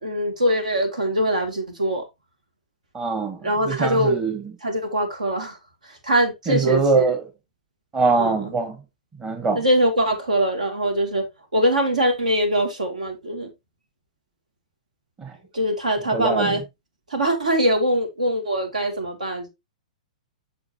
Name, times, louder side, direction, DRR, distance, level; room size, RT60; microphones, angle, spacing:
voice 1, 0.0-2.0 3.4-4.2 4.6-5.6 5.8-7.1 8.2-8.5 9.5-11.3 11.5-13.5 15.5-16.6 17.1-19.5, equal, 75° right, 2.6 m, -22 dB
voice 2, 2.9-4.5 6.5-7.3 7.9-8.8 9.2-9.6 15.2-15.4 16.1-16.6, right 4 dB, 20° right, 1.4 m, -23 dB
7.8 x 6.4 x 2.9 m
figure-of-eight pair, 110°, 4 cm